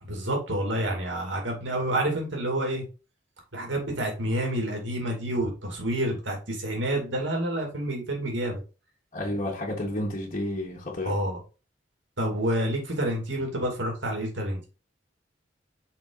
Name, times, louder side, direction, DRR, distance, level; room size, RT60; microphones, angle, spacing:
voice 1, 0.0-2.8 3.5-8.6 11.1-11.4 12.2-14.6, right 1 dB, 85° right, 2.5 m, -28 dB
voice 2, 9.1-11.1, left 1 dB, 40° left, 1.7 m, -31 dB
5.8 x 4.4 x 4.0 m
head